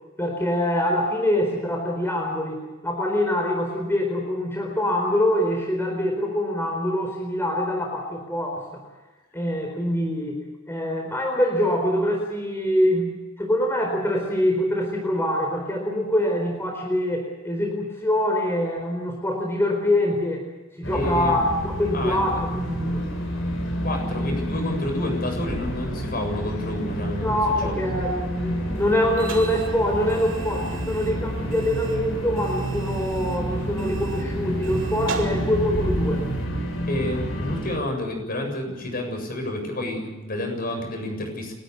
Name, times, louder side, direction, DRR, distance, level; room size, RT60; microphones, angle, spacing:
voice 1, 0.2-8.8 9.3-20.4 20.8-23.0 27.2-36.2, left 1 dB, 10° left, 1 dB, 4.3 m, -24 dB
sound 1, 20.8-37.8, equal, 85° left, 7.2 m, -29 dB
voice 2, 20.9-21.4 21.9-22.2 23.8-27.7 36.9-41.5, left 1 dB, 45° left, 3 dB, 7.5 m, -29 dB
sound 2, 28.7-36.4, right 3 dB, 75° right, 3.1 m, -39 dB
29.5 x 13.5 x 8.5 m, 1.1 s
head